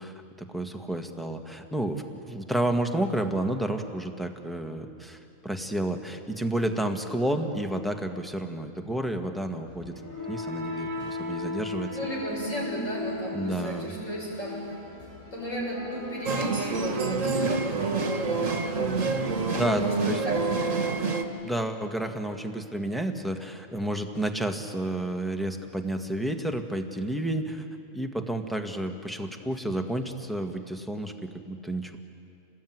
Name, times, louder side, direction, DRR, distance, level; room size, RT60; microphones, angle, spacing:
voice 1, 0.0-9.9 10.3-11.9 13.3-13.9 19.5-20.2 21.4-27.6 27.9-32.0, right 1 dB, ahead, 4 dB, 1.6 m, -31 dB
sound 1, 9.7-21.6, left 2 dB, 85° left, 7.8 m, -39 dB
voice 2, 11.9-14.6 15.3-18.8 19.6-19.9 20.2-20.8, equal, 70° left, -4 dB, 7.2 m, -34 dB
sound 2, 16.3-21.2, right 4 dB, 75° right, 2.0 m, -27 dB
28.0 x 20.0 x 9.4 m, 2.7 s
omnidirectional pair, 1.4 m